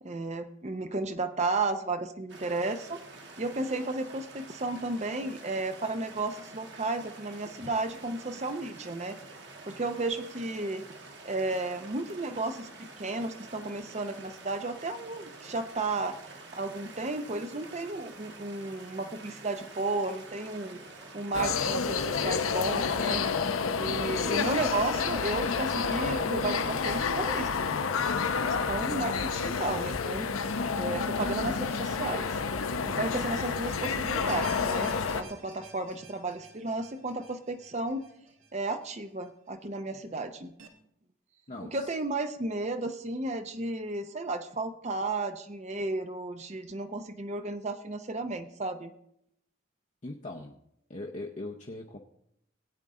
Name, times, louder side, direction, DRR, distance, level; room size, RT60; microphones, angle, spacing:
voice 1, 0.0-3.0 3.4-9.2 9.7-10.9 11.2-16.1 16.5-20.8 21.1-23.3 23.8-27.5 28.5-30.3 30.7-32.4 32.8-38.1 38.5-40.5 41.6-48.9, right 2 dB, 35° right, 8 dB, 0.6 m, -33 dB
sound 1, 2.3-21.8, right 3 dB, 55° right, 1.7 m, -48 dB
sound 2, 21.3-35.2, left 5 dB, 90° left, 0.7 m, -29 dB
sound 3, 34.3-39.5 39.9-40.0 40.6-40.7, right 4 dB, 75° right, 1.4 m, -50 dB
voice 2, 41.5-41.9 50.0-50.6 50.9-52.0, left 2 dB, 35° left, 0 dB, 0.7 m, -40 dB
17.5 x 8.9 x 3.7 m, 0.77 s
head